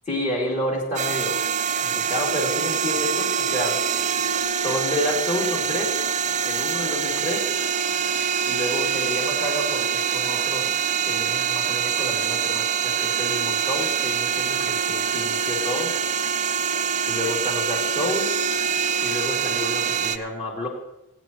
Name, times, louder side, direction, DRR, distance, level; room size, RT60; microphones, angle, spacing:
voice 1, 0.1-1.5 1.8-3.8 4.6-5.9 6.4-7.4 8.5-10.7 11.0-15.9 17.1-18.3 19.0-20.7, left 1 dB, 35° left, -3 dB, 2.8 m, -29 dB
sound 1, 1.0-20.2, right 7 dB, 35° right, 0.5 m, -25 dB
19.5 x 9.3 x 3.0 m, 0.87 s
head